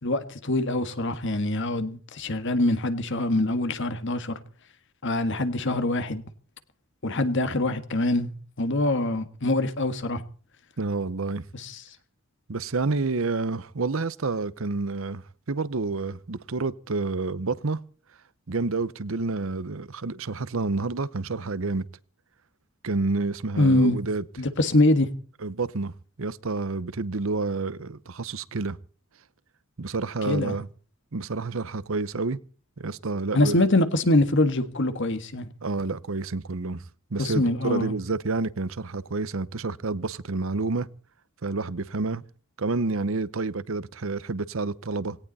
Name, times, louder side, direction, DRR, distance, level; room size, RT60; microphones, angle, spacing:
voice 1, 0.0-4.4 5.0-6.2 7.0-10.2 11.5-11.8 23.6-24.0 24.4-25.1 30.3-30.6 33.3-35.5 37.2-37.9, left 2 dB, 60° left, 1.7 m, -24 dB
voice 2, 10.8-11.5 12.5-17.8 18.5-21.8 22.8-24.2 25.4-25.9 26.2-28.8 29.8-30.7 31.1-32.4 32.8-33.6 35.6-36.8 37.1-40.9 41.4-42.2 42.6-45.2, right 3 dB, 65° right, 0.8 m, -29 dB
18.0 x 18.0 x 4.2 m
head